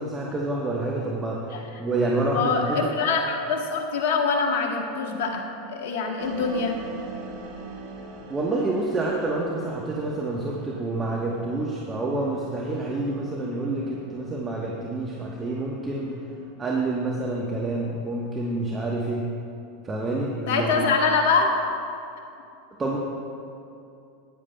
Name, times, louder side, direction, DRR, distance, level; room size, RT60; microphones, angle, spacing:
voice 1, 0.0-1.4 1.8-2.9 8.3-16.1 16.6-19.2 19.8-20.9 22.8-23.0, right 2 dB, 20° right, -2 dB, 1.1 m, -28 dB
voice 2, 1.5-1.8 2.3-6.8 20.5-21.7, left 4 dB, 65° left, 1 dB, 1.2 m, -24 dB
sound 1, 6.2-17.0, right 3 dB, 60° right, 1.3 m, -44 dB
14.5 x 9.6 x 2.2 m, 2.6 s
hypercardioid pair, 85°, 0 cm